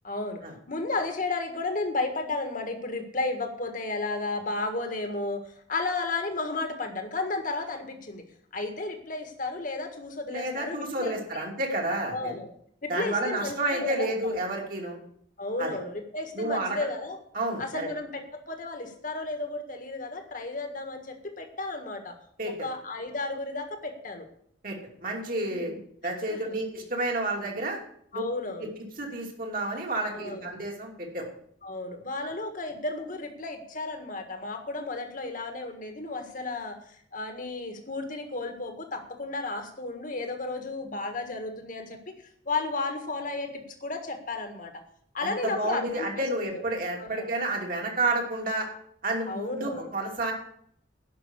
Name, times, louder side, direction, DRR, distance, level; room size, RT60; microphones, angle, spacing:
voice 1, 0.0-0.4 0.7-5.4 5.7-8.2 8.5-11.4 12.1-12.5 12.8-14.4 15.4-17.2 17.6-22.1 22.6-24.3 25.5-25.8 26.3-26.6 28.1-28.7 30.1-30.5 31.6-36.8 37.1-42.1 42.4-44.8 45.1-46.6 47.0-47.3 49.3-49.9, left 3 dB, 45° left, 5 dB, 1.7 m, -33 dB
voice 2, 10.3-12.3 12.9-15.0 15.6-15.8 16.3-16.8 17.3-17.9 22.4-22.7 24.6-25.7 26.0-27.8 28.1-28.2 28.6-28.7 29.0-31.2 45.2-48.7 49.0-50.3, right 2 dB, 50° right, 0 dB, 2.9 m, -30 dB
11.0 x 6.1 x 8.1 m, 0.66 s
head